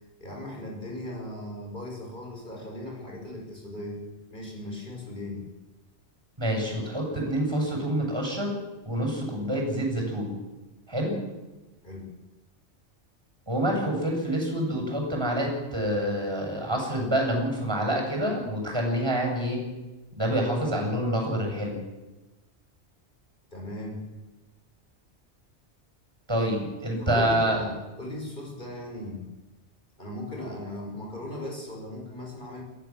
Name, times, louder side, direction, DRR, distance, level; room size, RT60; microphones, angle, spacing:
voice 1, 0.2-4.0 4.3-5.5 11.8-12.1 23.5-24.0 26.5-26.6 27.0-29.3 30.0-32.6, left 1 dB, 45° left, 0 dB, 6.2 m, -37 dB
voice 2, 6.4-8.5 8.8-10.4 10.9-11.2 13.5-19.6 20.2-21.8 26.3-27.6, right 1 dB, 20° right, 1 dB, 7.9 m, -27 dB
22.0 x 16.5 x 7.6 m, 1.1 s
omnidirectional pair, 1.2 m